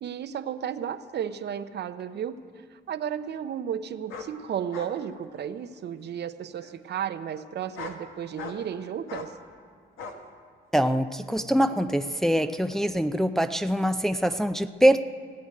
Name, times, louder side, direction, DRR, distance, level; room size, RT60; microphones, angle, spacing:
voice 1, 0.0-2.4 2.7-9.3, right 9 dB, 60° right, 11 dB, 0.7 m, -33 dB
sound 1, 2.0-2.1 4.1-4.3 4.7-4.9 5.3-5.9 6.6-6.7 7.6-8.0 8.4-8.7 9.1-9.3 10.0-10.2 10.7-10.8, left 4 dB, 85° left, 1.6 m, -40 dB
voice 2, 10.7-15.0, equal, ahead, 8 dB, 0.5 m, -24 dB
17.0 x 7.9 x 9.3 m, 2.2 s
cardioid pair, 90°, 20 cm